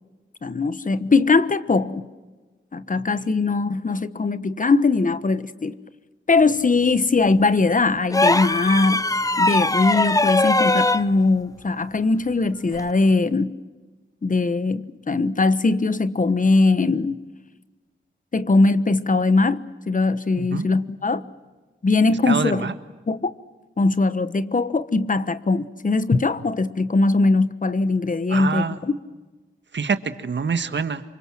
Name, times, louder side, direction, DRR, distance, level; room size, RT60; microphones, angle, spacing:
voice 1, 0.4-2.0 2.7-5.8 6.3-9.1 9.4-13.5 14.2-17.2 18.3-21.2 21.8-22.7 23.1-23.3 23.8-28.9, left 3 dB, 40° left, 15 dB, 1.2 m, -20 dB
voice 2, 2.9-3.3 20.4-20.6 22.3-22.7 28.3-28.8 29.7-31.0, right 5 dB, 65° right, 11 dB, 1.7 m, -26 dB
sound 1, 8.1-11.1 12.7-12.9, left 2 dB, 15° left, 0.9 m, -20 dB
27.5 x 24.5 x 7.6 m, 1.2 s
cardioid pair, 65°, 20 cm